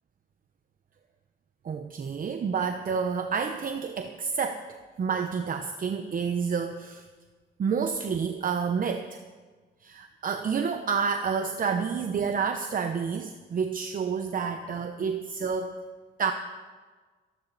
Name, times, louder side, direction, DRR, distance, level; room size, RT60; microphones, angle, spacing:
voice 1, 1.6-7.1 7.6-9.2 9.8-15.8 16.2-16.3, right 6 dB, 45° right, 6 dB, 1.0 m, -29 dB
26.0 x 11.5 x 4.2 m, 1.4 s
cardioid pair, 90°, 20 cm